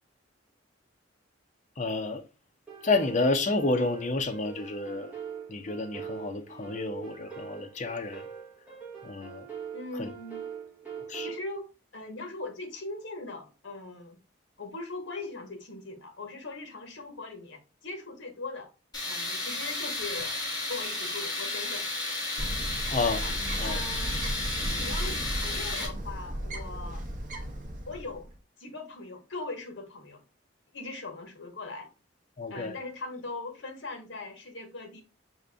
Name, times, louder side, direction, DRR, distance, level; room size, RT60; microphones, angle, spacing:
voice 1, 1.8-2.2 2.8-5.1 5.5-8.2 9.0-9.5 10.0-10.1 11.1-11.3 22.9-23.2 23.6-23.8 32.4-32.7, left 3 dB, 35° left, 0.5 m, -29 dB
sound 1, 2.7-11.4, right 7 dB, 5° right, 1.0 m, -43 dB
voice 2, 9.7-10.5 11.2-14.2 14.6-18.7 19.0-21.9 23.6-24.3 24.7-27.0 27.9-28.3 28.6-30.2 30.7-31.9 32.5-35.0, left 3 dB, 70° left, 1.0 m, -40 dB
Tools, 18.9-25.9, left 2 dB, 20° left, 1.4 m, -33 dB
Bird, 22.4-28.3, right 1 dB, 40° right, 0.7 m, -35 dB
5.2 x 2.5 x 3.4 m
head